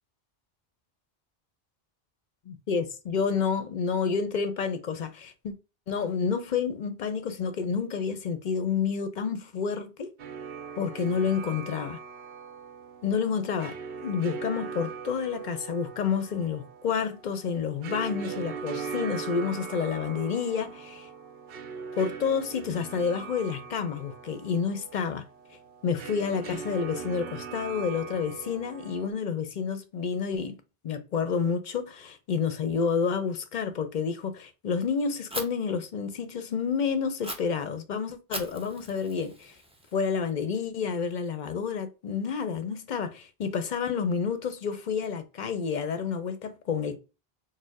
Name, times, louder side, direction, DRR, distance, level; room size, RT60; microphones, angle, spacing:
voice 1, 2.5-5.5 5.9-10.1 10.8-12.0 13.0-13.8 14.0-21.1 22.0-25.3 25.8-30.6 30.8-39.5 39.9-47.0, left 6 dB, 55° left, 0.6 m, -29 dB
sound 1, 10.2-29.1, right 6 dB, 70° right, 0.8 m, -40 dB
Fire, 35.3-35.4 37.2-37.3 38.3-40.3, right 1 dB, 5° right, 0.5 m, -39 dB
4.4 x 2.0 x 4.6 m
omnidirectional pair, 1.0 m